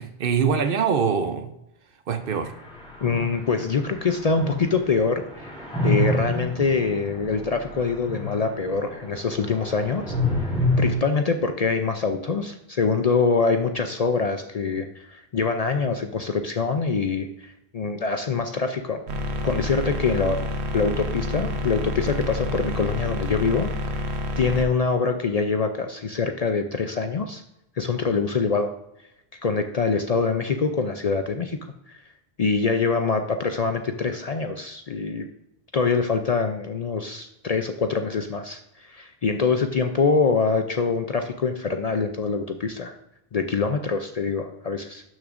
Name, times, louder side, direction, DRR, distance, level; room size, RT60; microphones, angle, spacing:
voice 1, 0.0-1.5 2.1-2.5, right 6 dB, 60° right, 9 dB, 0.8 m, -23 dB
sound 1, 2.2-10.9, left 1 dB, 5° left, 3.1 m, -28 dB
voice 2, 3.0-5.5 5.8-10.5 10.8-19.0 19.4-20.4 20.7-24.1 24.4-27.4 27.8-28.7 29.4-31.6 31.9-32.0 32.4-35.3 35.7-43.0 43.3-45.0, left 4 dB, 50° left, 6 dB, 0.5 m, -24 dB
sound 2, 19.1-24.6, left 1 dB, 85° right, 1.2 m, -28 dB
12.0 x 6.3 x 2.5 m, 0.83 s
omnidirectional pair, 1.1 m